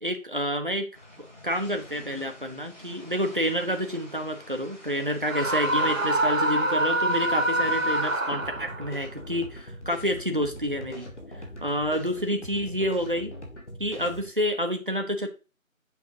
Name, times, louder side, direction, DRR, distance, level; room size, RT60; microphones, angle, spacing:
voice 1, 0.0-0.9 1.2-11.1 11.6-13.3 13.8-15.3, equal, 40° right, 5 dB, 0.8 m, -29 dB
sound 1, 0.9-8.2, left 1 dB, 35° left, 3.8 m, -46 dB
Screaming, 5.2-8.9, right 1 dB, 75° right, 1.3 m, -25 dB
sound 2, 8.3-14.3, equal, 55° left, 2.1 m, -41 dB
7.4 x 5.1 x 2.8 m, 0.32 s
figure-of-eight pair, 180°, 41 cm